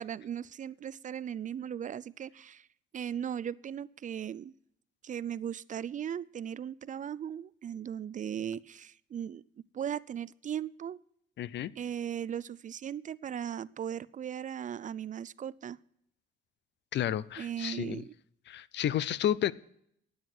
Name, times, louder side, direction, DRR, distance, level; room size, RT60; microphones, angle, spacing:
voice 1, 0.0-2.7 2.9-4.5 5.0-9.4 9.7-11.0 11.8-15.8 17.4-18.1, right 9 dB, 40° right, 0.4 m, -37 dB
voice 2, 11.4-11.7 16.9-18.0 18.5-19.5, left 11 dB, 65° left, 0.5 m, -31 dB
9.7 x 9.4 x 6.1 m
cardioid pair, 90°, 20 cm